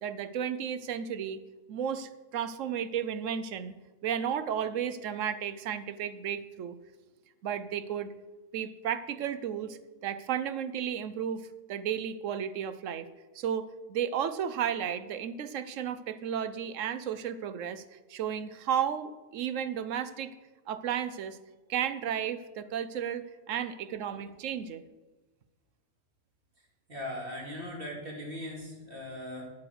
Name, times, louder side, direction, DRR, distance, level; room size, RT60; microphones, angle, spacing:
voice 1, 0.0-1.4 1.7-3.7 4.0-6.8 7.4-8.1 8.5-13.1 13.3-20.3 20.7-21.4 21.7-24.8, right 8 dB, 85° right, 13 dB, 1.1 m, -33 dB
voice 2, 26.9-29.4, left 1 dB, 45° right, -2 dB, 3.0 m, -39 dB
10.0 x 8.4 x 6.1 m, 1.2 s
omnidirectional pair, 1.3 m